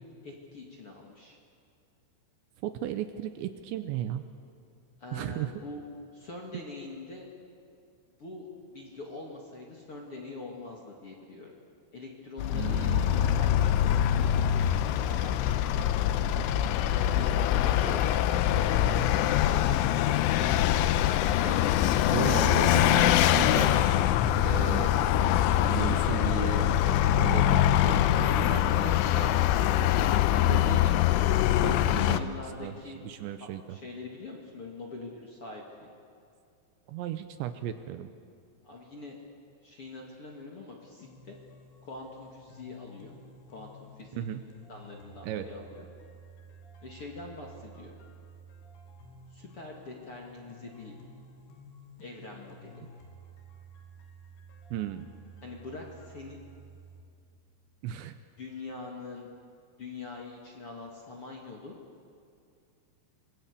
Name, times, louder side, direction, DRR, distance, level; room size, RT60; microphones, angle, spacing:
voice 1, 0.2-1.4 5.0-5.8 6.1-7.3 8.2-11.5 11.9-15.9 17.1-21.0 30.0-30.2 31.7-33.0 33.4-35.9 38.6-39.2 39.6-41.4 41.8-43.1 43.5-44.3 44.7-45.9 46.8-47.9 49.3-51.0 52.0-52.8 55.4-56.4 58.4-59.3 59.8-61.8, left 3 dB, 40° left, -1 dB, 2.4 m, -44 dB
voice 2, 2.6-4.2 5.1-5.5 12.5-13.2 17.8-18.1 21.4-21.6 22.1-23.9 24.4-25.0 25.7-29.4 30.5-31.0 31.6-32.3 32.6-33.8 36.9-38.1 44.1-44.4 45.2-45.5 52.8-52.9 54.7-55.1 57.8-58.2, right 11 dB, 75° right, 9 dB, 2.9 m, -35 dB
Vehicle, 12.4-32.2, left 11 dB, 80° left, 3.3 m, -24 dB
sound 1, 41.0-57.0, right 2 dB, 60° left, 4.5 m, -52 dB
26.5 x 21.5 x 8.5 m, 2.4 s
omnidirectional pair, 5.6 m